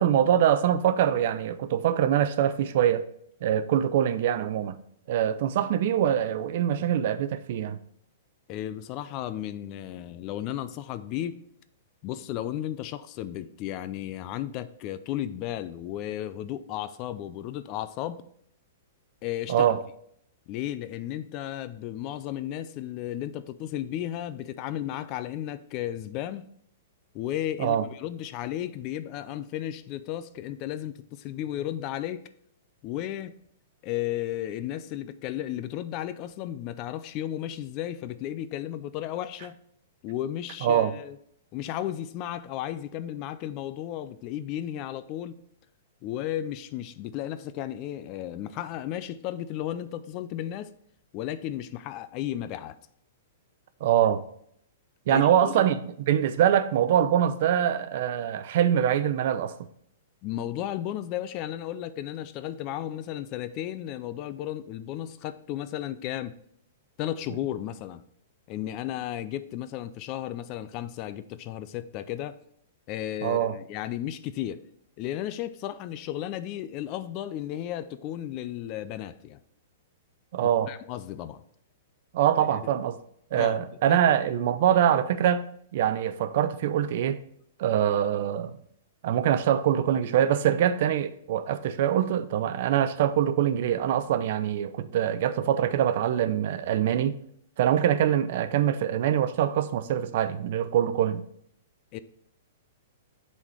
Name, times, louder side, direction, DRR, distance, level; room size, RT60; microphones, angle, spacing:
voice 1, 0.0-3.1 3.4-4.8 5.1-7.8 19.5-19.8 27.6-27.8 40.6-40.9 53.8-54.2 55.1-59.6 73.2-73.5 80.3-80.7 82.1-83.0 83.3-85.4 85.7-87.2 87.6-88.5 89.0-97.2 97.6-101.2, right 10 dB, 55° right, 0.5 m, -24 dB
voice 2, 8.5-11.4 12.0-18.2 19.2-19.7 20.5-26.5 27.1-32.3 32.8-33.3 33.8-39.6 40.0-41.2 41.5-45.4 46.0-50.7 51.1-52.8 55.1-55.7 60.2-66.4 67.0-68.0 68.5-72.4 72.9-74.6 75.0-79.4 80.4-81.4 83.3-84.0 101.9-102.0, left 12 dB, 35° left, 0.4 m, -34 dB
7.1 x 4.2 x 4.9 m
hypercardioid pair, 150°, 0 cm